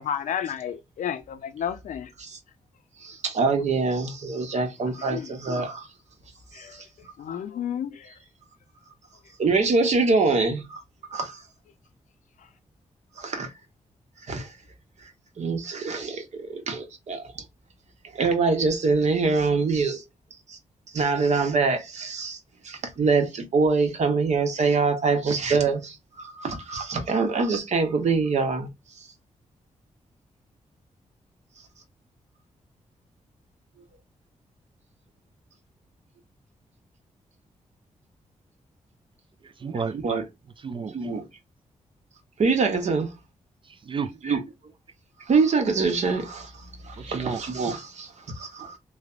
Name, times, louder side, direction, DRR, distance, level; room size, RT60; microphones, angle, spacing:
voice 1, 0.0-2.1 5.1-5.3 6.5-6.8 7.2-8.2, left 9 dB, 80° left, 0.5 m, -32 dB
voice 2, 3.0-5.9 6.5-6.9 9.4-10.8 11.1-11.4 13.2-13.5 14.3-14.6 15.0-15.1 15.4-17.4 18.1-20.0 20.5-20.6 20.9-22.4 22.6-28.7 29.0-29.1 40.0-40.2 40.9-41.2 42.4-43.1 44.2-44.4 45.2-48.8, right 4 dB, 65° right, 0.9 m, -25 dB
voice 3, 39.4-40.0 40.6-41.1 43.6-44.4 47.0-47.4, right 6 dB, 40° right, 0.3 m, -32 dB
3.2 x 2.1 x 2.4 m
cardioid pair, 80°, 13 cm